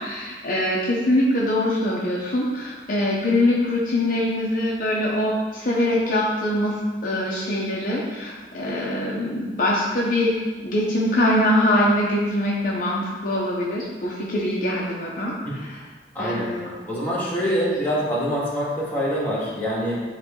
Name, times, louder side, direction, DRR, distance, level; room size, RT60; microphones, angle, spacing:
voice 1, 0.0-6.7 7.0-15.3 16.2-16.7 17.4-17.5, left 1 dB, 50° left, -4 dB, 0.8 m, -23 dB
voice 2, 16.1-16.5 16.9-20.0, equal, 10° left, -7 dB, 1.9 m, -25 dB
8.9 x 3.3 x 3.8 m, 1.3 s
head